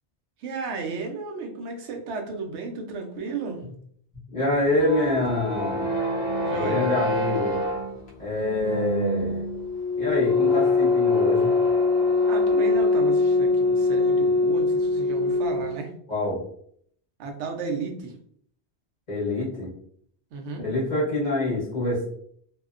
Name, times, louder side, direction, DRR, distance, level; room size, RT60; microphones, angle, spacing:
voice 1, 0.4-3.6 6.4-6.9 12.3-15.9 17.2-18.2 20.3-20.6, right 4 dB, 80° right, 3 dB, 0.9 m, -33 dB
voice 2, 4.3-5.8 6.5-7.6 8.2-9.4 10.0-11.5 16.1-16.4 19.1-19.7 20.6-22.1, left 2 dB, 40° left, -8 dB, 1.1 m, -26 dB
sound 1, 4.5-15.8, left 3 dB, 70° left, 0.9 m, -23 dB
2.8 x 2.1 x 2.3 m, 0.63 s
omnidirectional pair, 1.1 m